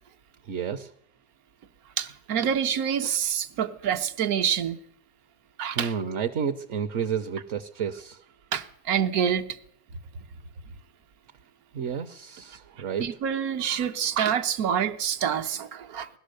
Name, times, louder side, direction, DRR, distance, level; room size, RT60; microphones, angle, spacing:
voice 1, 0.4-0.9 5.7-8.2 11.7-13.0, right 7 dB, 60° right, 1.0 m, -31 dB
voice 2, 2.0-4.8 5.6-5.9 8.5-9.6 13.0-16.1, right 8 dB, 75° right, 1.3 m, -27 dB
17.5 x 12.0 x 6.5 m
omnidirectional pair, 1.6 m